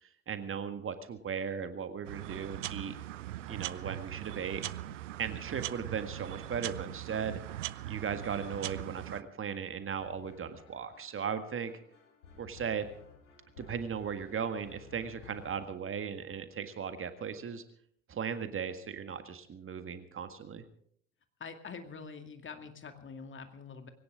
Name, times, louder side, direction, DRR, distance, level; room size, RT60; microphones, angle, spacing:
voice 1, 0.0-3.0 3.5-4.6 5.2-7.4 7.9-11.7 12.4-12.9 13.6-17.6 18.1-20.6, right 7 dB, 35° right, 9 dB, 1.8 m, -37 dB
sound 1, 2.0-9.2, right 14 dB, 80° right, 0.6 m, -40 dB
sound 2, 10.0-15.6, left 5 dB, 80° left, 2.6 m, -55 dB
voice 2, 21.4-23.9, left 5 dB, 30° left, 7 dB, 2.3 m, -45 dB
21.0 x 17.5 x 3.7 m, 0.62 s
figure-of-eight pair, 60°, 37 cm